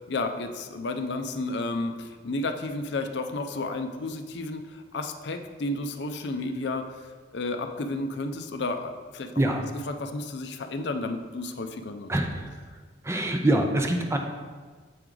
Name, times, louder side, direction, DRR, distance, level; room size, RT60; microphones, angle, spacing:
voice 1, 0.1-7.0 7.3-9.4 9.9-12.1, left 2 dB, 65° left, 7 dB, 0.5 m, -32 dB
voice 2, 12.1-12.4 13.0-14.2, right 1 dB, 15° right, 3 dB, 0.5 m, -24 dB
7.8 x 4.6 x 3.8 m, 1.5 s
head